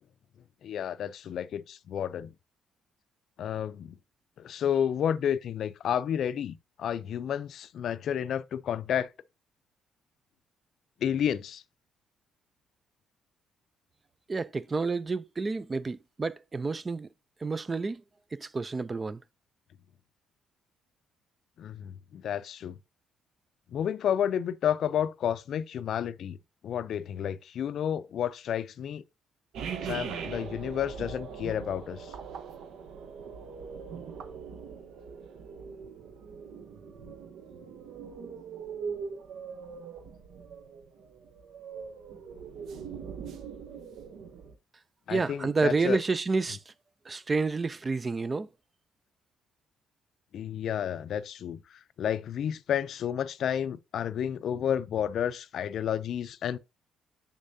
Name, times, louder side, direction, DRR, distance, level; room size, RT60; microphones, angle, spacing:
voice 1, 0.6-2.3 3.4-4.0 4.4-9.1 11.0-11.6 21.6-22.8 23.7-26.4 26.6-29.0 29.8-32.1 45.1-46.0 50.3-56.6, left 9 dB, 60° left, 0.4 m, -31 dB
voice 2, 14.3-17.1 17.4-18.0 18.3-19.2 45.1-46.7 47.1-48.5, right 4 dB, 25° right, 0.3 m, -29 dB
sound 1, 29.5-44.5, right 6 dB, 70° right, 0.7 m, -41 dB
6.6 x 6.4 x 2.6 m
cardioid pair, 120°, 0 cm